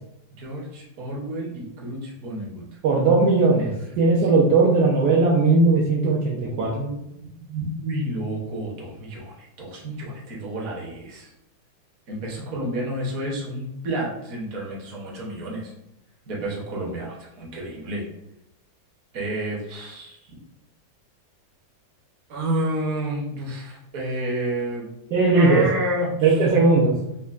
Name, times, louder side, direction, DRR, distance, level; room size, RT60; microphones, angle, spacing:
voice 1, 0.4-2.6 6.4-7.1 7.5-11.3 12.1-15.7 16.3-18.0 19.1-20.2 22.3-24.9 25.3-26.5, right 1 dB, 55° right, -3 dB, 1.3 m, -30 dB
voice 2, 2.8-6.7 25.1-25.6 26.2-26.9, right 3 dB, 75° right, -4 dB, 1.2 m, -18 dB
5.4 x 2.2 x 2.4 m, 0.84 s
omnidirectional pair, 1.9 m